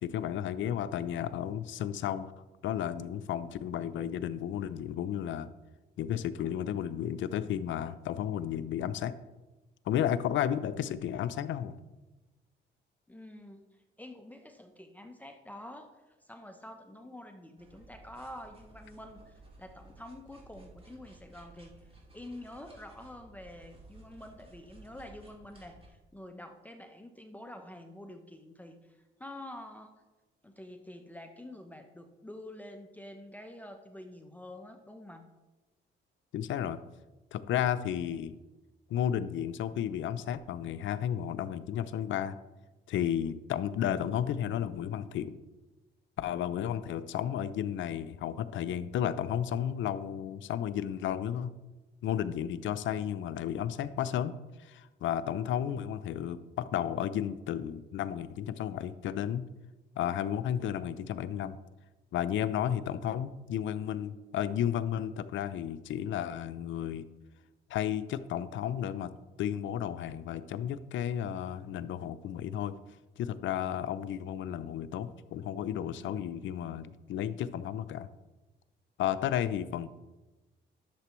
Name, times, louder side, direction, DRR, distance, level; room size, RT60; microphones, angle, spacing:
voice 1, 0.0-2.3 2.6-5.5 6.0-9.1 9.9-11.8 36.3-36.8 37.3-38.3 38.9-42.4 42.9-45.4 46.2-51.5 52.0-54.3 54.6-59.5 60.0-61.6 62.1-67.1 67.7-69.1 69.4-72.7 73.2-78.1 79.0-79.9, left 10 dB, 75° left, 13 dB, 0.5 m, -33 dB
voice 2, 13.1-13.6 14.0-29.9 30.4-35.3, left 1 dB, 10° left, 5 dB, 0.7 m, -47 dB
sound 1, 17.6-25.9, right 2 dB, 30° right, 2.4 m, -56 dB
11.5 x 6.8 x 3.1 m, 1.1 s
cardioid pair, 90°, 20 cm